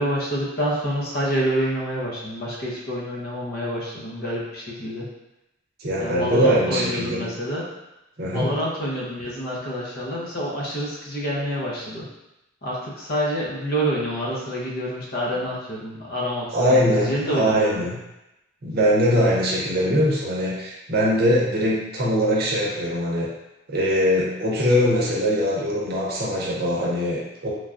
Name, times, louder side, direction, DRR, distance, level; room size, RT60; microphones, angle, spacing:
voice 1, 0.0-5.1 6.0-7.7 8.3-12.1 12.6-17.8, equal, 50° left, -4 dB, 0.7 m, -27 dB
voice 2, 5.8-7.3 8.2-8.5 16.5-18.0 18.6-23.3 23.7-27.5, equal, 50° right, -4 dB, 0.7 m, -22 dB
3.2 x 2.3 x 2.5 m, 0.93 s
head